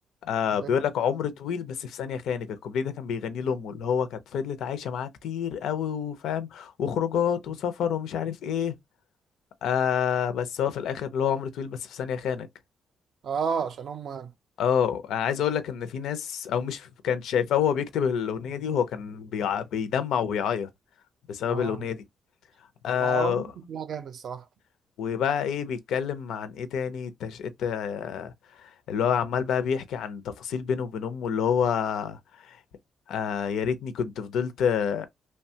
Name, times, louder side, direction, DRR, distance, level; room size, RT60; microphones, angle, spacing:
voice 1, 0.2-8.7 9.6-12.5 14.6-20.7 21.3-22.0 22.8-23.4 25.0-28.3 28.6-32.2 32.5-32.6 33.1-35.1, left 8 dB, 80° left, 0.5 m, -28 dB
voice 2, 13.2-14.3 21.4-21.8 23.0-24.5, right 6 dB, 50° right, 0.5 m, -32 dB
3.0 x 2.2 x 2.7 m
cardioid pair, 170°, 0 cm